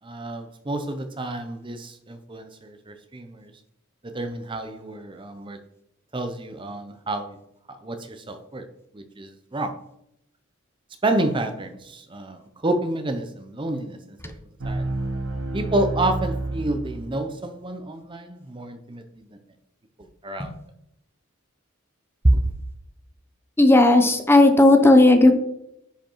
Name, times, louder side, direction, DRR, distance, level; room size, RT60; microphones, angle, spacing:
voice 1, 0.0-3.5 4.0-5.6 6.1-7.4 7.8-8.6 8.9-9.7 11.0-14.3 14.6-14.9 15.5-19.4 20.2-20.6 22.2-22.4, right 1 dB, 25° right, 7 dB, 0.7 m, -28 dB
sound 1, 14.6-17.4, right 2 dB, 70° right, 0.9 m, -29 dB
voice 2, 23.6-25.3, left 2 dB, 10° left, 7 dB, 0.8 m, -14 dB
10.5 x 5.1 x 4.5 m, 0.79 s
head